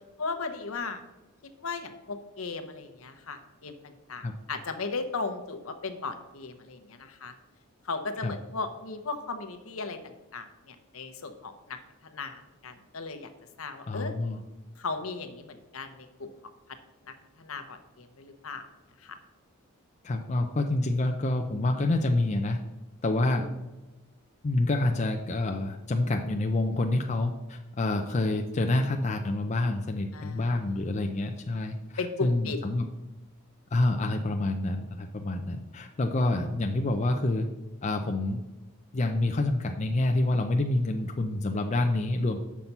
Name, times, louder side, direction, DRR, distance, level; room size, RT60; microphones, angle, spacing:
voice 1, 0.2-1.0 1.4-7.3 7.8-13.3 13.6-14.2 14.8-16.3 17.0-18.7 19.0-19.2 23.3-23.5 30.1-31.2 32.0-32.6, left 4 dB, 70° left, 8 dB, 0.9 m, -37 dB
voice 2, 13.9-14.4 20.0-22.6 23.0-23.4 24.4-31.8 32.2-32.9 33.7-37.5 37.8-38.4 38.9-42.4, left 2 dB, 30° left, 4 dB, 0.5 m, -27 dB
7.3 x 5.9 x 5.4 m, 1.1 s
head